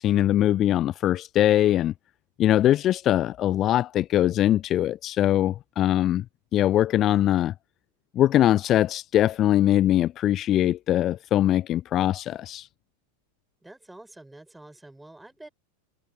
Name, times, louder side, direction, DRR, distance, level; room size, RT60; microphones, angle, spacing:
voice 1, 0.0-1.9 2.4-6.2 6.5-7.5 8.2-12.7, left 12 dB, 30° left, 0.4 m, -22 dB
voice 2, 13.6-15.5, right 2 dB, 5° right, 5.8 m, -47 dB
figure-of-eight pair, 90°, 0 cm